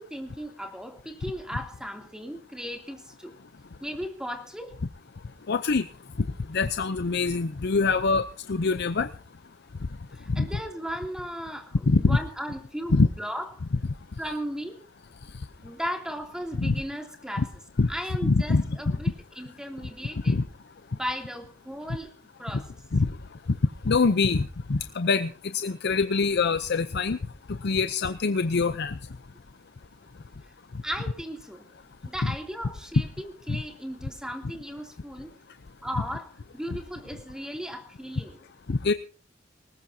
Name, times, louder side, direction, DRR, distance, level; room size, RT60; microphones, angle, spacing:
voice 1, 0.0-3.3 3.8-4.8 10.1-13.5 14.2-14.8 15.6-17.5 17.9-20.4 20.9-22.1 22.4-22.7 30.8-31.7 32.0-35.3 35.8-38.4, equal, 5° right, 3 dB, 2.8 m, -36 dB
voice 2, 5.5-5.9 6.2-9.1 10.3-10.5 11.9-12.2 12.9-13.1 15.3-15.5 16.6-16.8 17.4-17.5 17.8-17.9 18.2-19.0 20.2-20.5 22.5-22.6 22.9-23.2 23.5-23.6 23.8-27.2 27.5-29.0 33.5-33.6 38.7-38.9, left 4 dB, 60° left, 10 dB, 0.7 m, -24 dB
19.5 x 19.5 x 2.8 m, 0.37 s
head